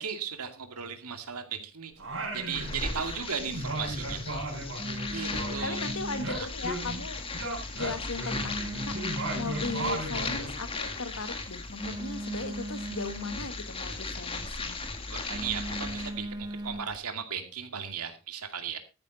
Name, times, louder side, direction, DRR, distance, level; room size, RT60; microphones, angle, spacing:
voice 1, 0.0-1.9 2.3-4.6 5.1-5.8 6.4-6.5 15.1-18.8, right 7 dB, 90° right, 7 dB, 2.4 m, -36 dB
Singing, 2.0-3.1 3.4-7.0 7.3-10.6, right 1 dB, 65° right, 5.6 m, -36 dB
sound 1, 2.5-16.1, left 3 dB, 25° left, 1.8 m, -37 dB
Telephone, 2.6-17.0, right 1 dB, 20° right, 0.9 m, -40 dB
voice 2, 5.6-7.2 7.7-14.8, left 3 dB, 65° left, 11 dB, 1.6 m, -37 dB
14.0 x 9.6 x 4.1 m, 0.29 s
head